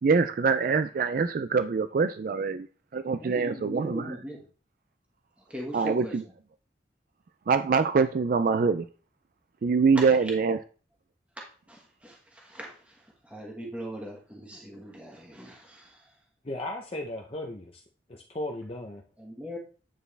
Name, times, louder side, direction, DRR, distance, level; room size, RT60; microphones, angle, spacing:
voice 1, 0.0-2.7 2.9-4.2 5.7-6.2 7.5-8.9 9.6-10.6, right 5 dB, 50° right, 0.4 m, -24 dB
voice 2, 3.2-4.4 5.5-6.1 9.9-10.3 11.7-16.1 19.2-19.6, equal, 10° right, 1.5 m, -40 dB
voice 3, 16.4-17.8 18.1-19.0, left 1 dB, 35° left, 0.8 m, -36 dB
9.1 x 4.5 x 3.4 m
head